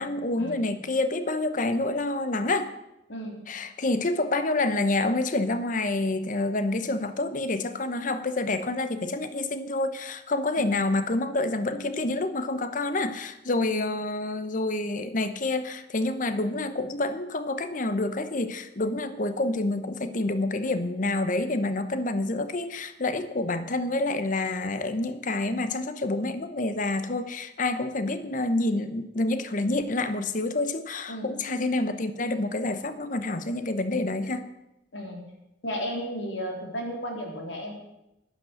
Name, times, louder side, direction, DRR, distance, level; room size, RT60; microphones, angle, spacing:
voice 1, 0.0-2.7 3.5-34.5, left 2 dB, 45° left, 11 dB, 0.9 m, -28 dB
voice 2, 3.1-3.4 10.6-10.8 13.6-13.8 31.1-31.4 34.9-35.2 35.6-37.7, equal, 85° left, 1 dB, 3.6 m, -34 dB
11.5 x 11.0 x 6.5 m, 0.89 s
head